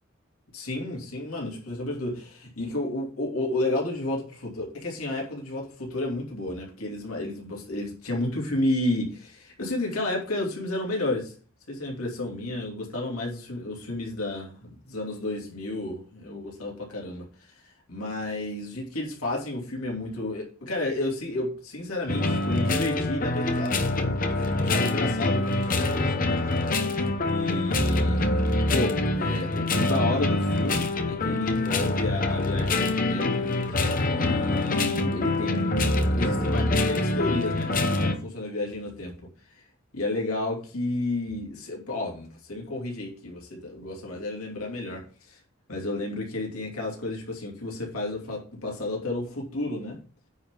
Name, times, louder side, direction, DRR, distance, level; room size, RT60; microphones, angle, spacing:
voice 1, 0.5-11.3 11.7-26.7 27.0-39.1 39.5-39.6 39.9-45.4 45.7-50.0, left 2 dB, 90° left, 2.8 m, -32 dB
sound 1, 22.1-38.1, left 2 dB, 40° left, 0.9 m, -25 dB
9.5 x 3.8 x 6.7 m
head